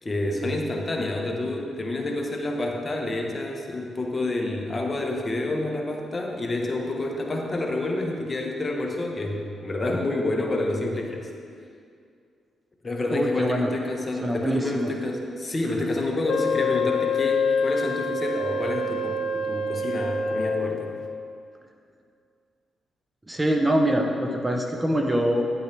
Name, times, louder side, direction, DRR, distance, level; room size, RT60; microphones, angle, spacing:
voice 1, 0.0-11.3 12.8-20.9, left 2 dB, 30° left, 1 dB, 1.2 m, -28 dB
voice 2, 13.1-13.7 14.2-14.9 23.3-25.4, right 1 dB, 15° right, 2 dB, 0.9 m, -24 dB
Wind instrument woodwind instrument, 16.3-20.9, left 3 dB, 75° left, 0.5 m, -26 dB
10.5 x 8.2 x 3.4 m, 2.3 s
cardioid pair, 70°, 0 cm